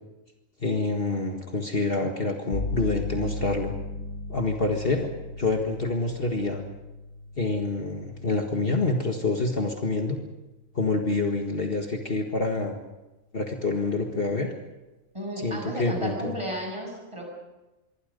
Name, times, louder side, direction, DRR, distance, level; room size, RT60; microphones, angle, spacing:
voice 1, 0.6-3.7 4.3-5.1 5.4-6.6 7.4-10.2 10.8-12.8 13.3-14.5 15.4-16.3, left 3 dB, 45° left, 2 dB, 1.9 m, -27 dB
sound 1, 2.5-10.2, left 3 dB, 80° left, 3.8 m, -37 dB
voice 2, 15.1-17.2, equal, 20° right, 0 dB, 7.4 m, -33 dB
25.5 x 23.5 x 5.3 m, 1.1 s
omnidirectional pair, 1.4 m